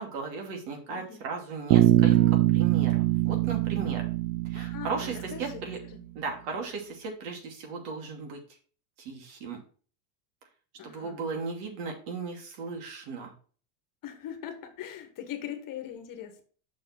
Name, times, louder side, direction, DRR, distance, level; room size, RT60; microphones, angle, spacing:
voice 1, 0.0-2.2 2.5-4.1 4.5-5.8 6.1-8.4 9.0-9.6 10.8-13.3, right 4 dB, 65° right, 2 dB, 2.8 m, -36 dB
voice 2, 0.9-1.3 4.5-5.6 5.9-6.0 10.8-11.4 14.0-16.4, left 10 dB, 40° left, 7 dB, 1.6 m, -41 dB
Bass guitar, 1.7-5.8, right 15 dB, 80° right, 0.6 m, -23 dB
6.3 x 4.7 x 5.9 m, 0.41 s
supercardioid pair, 125°, 48 cm